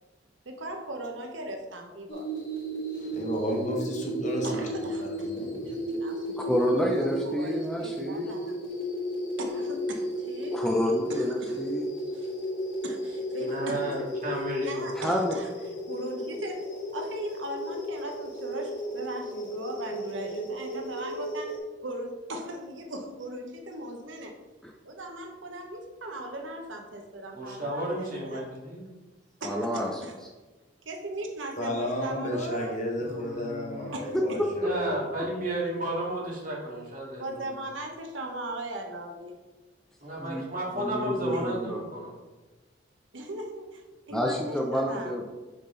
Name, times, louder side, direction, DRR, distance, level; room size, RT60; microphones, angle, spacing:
voice 1, 0.4-2.3 4.4-5.3 5.6-6.7 7.2-8.6 9.4-10.6 11.1-11.6 12.1-12.3 12.8-14.0 14.6-15.5 15.9-24.4 24.8-28.5 29.4-30.2 30.8-32.7 33.9-34.4 37.2-39.3 41.3-41.5 43.1-45.1, right 1 dB, 85° right, 3 dB, 1.1 m, -38 dB
sound 1, 2.1-21.6, equal, 80° left, 2.3 m, -34 dB
voice 2, 3.0-4.6 5.0-5.7 31.6-35.0, equal, 40° left, 0 dB, 1.3 m, -32 dB
voice 3, 6.4-8.4 10.5-11.9 14.9-15.3 24.6-24.7 29.4-30.0 40.1-40.4 40.7-41.8 44.1-45.3, left 1 dB, 5° left, 0 dB, 0.6 m, -29 dB
voice 4, 13.4-14.9 27.3-28.9 33.0-34.0 34.6-37.5 40.0-42.1, right 1 dB, 45° right, -4 dB, 2.3 m, -33 dB
6.7 x 5.9 x 3.9 m, 1.2 s
head